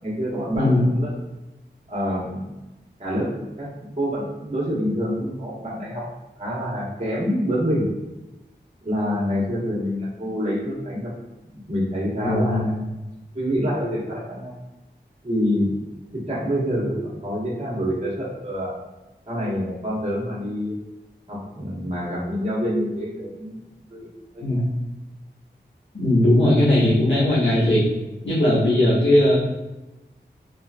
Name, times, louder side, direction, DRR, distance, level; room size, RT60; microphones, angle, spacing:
voice 1, 0.0-1.1 1.9-2.4 3.0-3.3 3.6-6.0 6.4-7.9 8.8-11.1 11.7-12.7 13.3-14.5 15.2-15.8 16.1-18.8 19.3-20.8 21.3-23.6 23.9-24.7, equal, 35° right, -6 dB, 1.2 m, -26 dB
voice 2, 0.5-0.8 12.2-12.7 24.4-24.7 25.9-27.8 28.2-29.3, left 1 dB, 90° left, -10 dB, 1.3 m, -18 dB
3.4 x 3.0 x 2.3 m, 1.0 s
wide cardioid pair, 65°, 18 cm